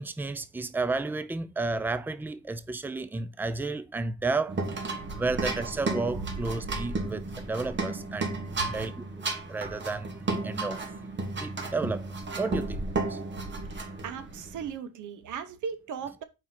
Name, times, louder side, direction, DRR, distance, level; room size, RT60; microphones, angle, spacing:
voice 1, 0.0-4.6 5.1-8.4 8.7-10.8 11.4-12.1 12.4-12.8 13.1-13.2, right 3 dB, 5° right, 0.5 m, -32 dB
sound 1, 4.5-14.7, right 3 dB, 40° right, 1.6 m, -33 dB
voice 2, 13.7-16.2, right 7 dB, 80° right, 0.9 m, -37 dB
4.8 x 3.9 x 5.8 m
cardioid pair, 90°, 30 cm